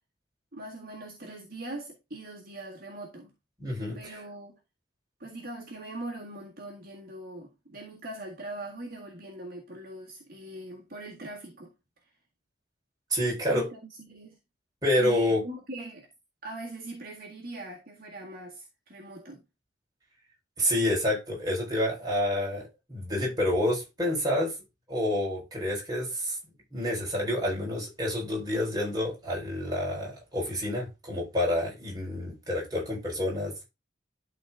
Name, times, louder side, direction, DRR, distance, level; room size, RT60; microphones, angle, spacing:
voice 1, 0.5-3.3 3.9-4.6 5.2-11.7 13.5-13.8 14.1-14.4 15.0-16.1 16.4-19.4, right 2 dB, 55° right, 1.8 m, -41 dB
voice 2, 3.6-4.2 13.1-13.6 14.8-15.4 20.6-24.5 24.9-26.4 26.7-33.5, left 1 dB, 20° right, 4.5 m, -28 dB
12.0 x 4.1 x 3.6 m
head